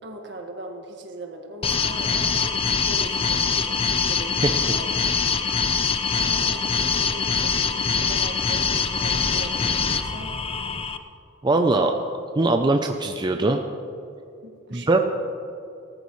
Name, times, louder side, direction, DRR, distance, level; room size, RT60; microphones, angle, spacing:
voice 1, 0.0-5.1 6.1-10.3 14.4-15.0, right 2 dB, 65° right, 3 dB, 1.7 m, -40 dB
sound 1, 1.6-11.0, left 5 dB, 30° left, 0.6 m, -24 dB
voice 2, 11.4-11.9 12.4-13.6 14.7-15.0, right 2 dB, 25° right, 5 dB, 0.5 m, -21 dB
18.5 x 13.5 x 3.2 m, 2.7 s
head